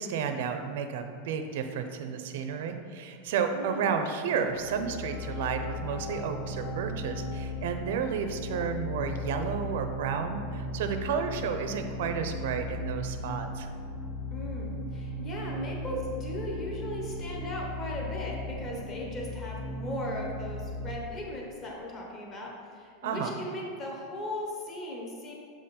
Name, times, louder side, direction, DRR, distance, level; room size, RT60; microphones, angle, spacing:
voice 1, 0.0-13.7 23.0-23.3, right 6 dB, 65° right, 7 dB, 0.5 m, -32 dB
voice 2, 3.5-3.9 14.3-25.3, left 1 dB, 25° left, -2 dB, 1.0 m, -37 dB
sound 1, 4.5-20.9, left 1 dB, 60° left, 0.6 m, -37 dB
7.1 x 3.8 x 4.2 m, 2.2 s
supercardioid pair, 165°, 0 cm